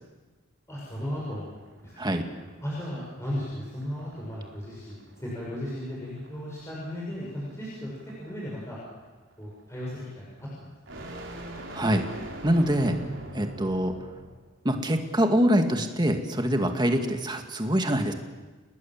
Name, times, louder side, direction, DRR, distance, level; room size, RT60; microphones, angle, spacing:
voice 1, 0.7-2.1 2.6-7.9 8.2-8.8 9.4-11.0 12.7-13.0, equal, 15° left, -6 dB, 6.1 m, -36 dB
sound 1, 0.9-14.4, right 1 dB, 60° right, 4.5 m, -45 dB
voice 2, 11.7-12.0 12.4-12.9 13.4-13.9 14.6-18.1, equal, 20° right, 5 dB, 2.1 m, -24 dB
29.5 x 19.5 x 7.5 m, 1.3 s
head